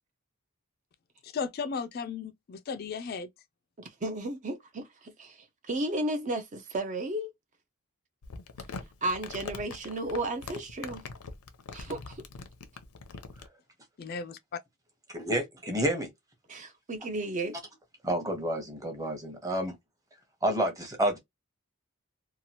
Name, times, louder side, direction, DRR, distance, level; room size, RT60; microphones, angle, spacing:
voice 1, 1.2-3.3 14.0-14.6, left 5 dB, 45° left, 0.3 m, -35 dB
voice 2, 3.8-7.3 9.0-11.0 11.7-12.2 16.5-17.6, right 1 dB, 35° right, 0.4 m, -34 dB
Crumpling crinkling, 8.2-13.5, left 4 dB, 90° left, 0.6 m, -42 dB
voice 3, 15.1-16.1 18.0-19.7 20.4-21.2, right 1 dB, 15° right, 0.9 m, -29 dB
2.9 x 2.3 x 2.7 m
head